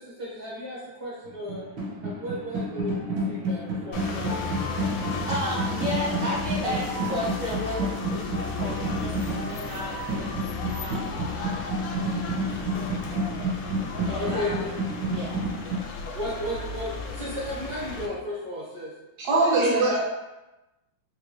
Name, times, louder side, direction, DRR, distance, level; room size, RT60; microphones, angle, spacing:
voice 1, 0.0-1.6 2.0-3.0 3.3-4.7 13.8-13.9 14.1-14.6 16.1-18.9, left 1 dB, 25° right, -7 dB, 0.7 m, -34 dB
sound 1, 1.3-15.8, right 1 dB, 80° right, 1.4 m, -31 dB
sound 2, 3.9-18.1, left 4 dB, 85° left, 1.3 m, -35 dB
sound 3, 4.3-10.9, equal, 60° left, 0.7 m, -40 dB
voice 2, 4.7-12.6 14.0-14.6 15.1-15.4, left 1 dB, 50° right, -10 dB, 1.2 m, -34 dB
voice 3, 19.2-20.0, right 2 dB, 65° right, -5 dB, 1.4 m, -21 dB
3.6 x 2.6 x 3.0 m, 0.99 s
omnidirectional pair, 2.0 m